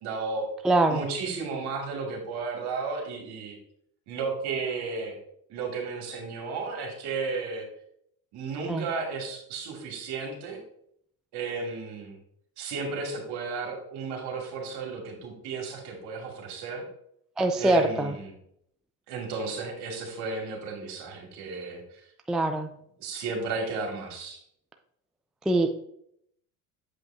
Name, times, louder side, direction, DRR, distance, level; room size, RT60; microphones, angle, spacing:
voice 1, 0.0-0.5 0.9-3.6 4.1-5.2 5.5-7.7 8.3-10.6 11.3-12.2 12.6-16.8 17.6-18.3 19.1-22.0 23.0-24.4, right 4 dB, 60° right, 1 dB, 2.2 m, -33 dB
voice 2, 0.6-1.0 8.7-8.8 17.4-18.1 22.3-22.7 25.5-25.7, right 2 dB, ahead, 5 dB, 0.4 m, -23 dB
7.6 x 5.3 x 2.7 m, 0.71 s
supercardioid pair, 85°, 44 cm